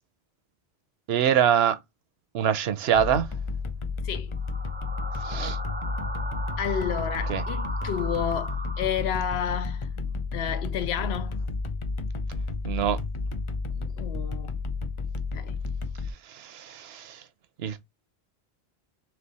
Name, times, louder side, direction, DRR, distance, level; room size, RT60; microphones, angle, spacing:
voice 1, 1.1-1.8 2.3-3.3 5.2-5.6 7.3-7.4 12.6-13.0 16.3-17.2 17.6-17.8, right 9 dB, 80° right, 0.9 m, -24 dB
sound 1, 2.9-16.1, left 3 dB, 40° left, 0.5 m, -32 dB
sound 2, 4.3-9.4, right 1 dB, 15° right, 0.3 m, -37 dB
voice 2, 6.6-11.4 13.7-14.5 15.3-15.5, left 9 dB, 85° left, 0.9 m, -31 dB
3.3 x 3.0 x 4.0 m
omnidirectional pair, 1.0 m